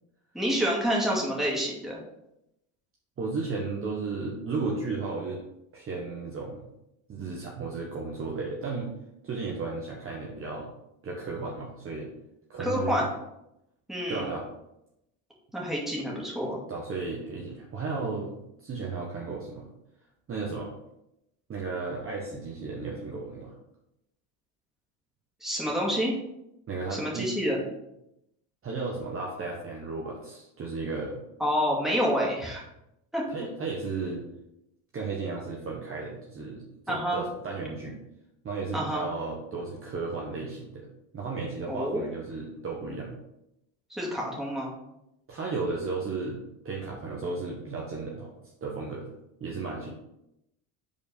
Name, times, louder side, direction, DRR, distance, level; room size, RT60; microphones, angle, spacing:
voice 1, 0.3-2.0 12.6-13.0 13.9-14.2 15.5-16.6 25.4-26.1 26.9-27.6 31.4-32.6 33.1-33.2 36.9-37.2 38.7-39.1 41.7-42.0 43.9-44.7, equal, ahead, -4 dB, 2.3 m, -28 dB
voice 2, 3.2-5.4 5.7-6.7 7.1-8.9 9.2-10.7 11.0-12.1 12.5-12.9 14.1-14.5 16.7-19.7 20.3-20.7 21.5-23.5 26.7-27.3 28.6-31.2 33.3-34.2 34.9-38.0 38.4-40.9 41.1-43.1 45.3-48.3 48.6-49.1 49.4-49.9, right 4 dB, 25° right, -2 dB, 1.2 m, -34 dB
5.2 x 4.5 x 5.2 m, 0.84 s
supercardioid pair, 120°, 48 cm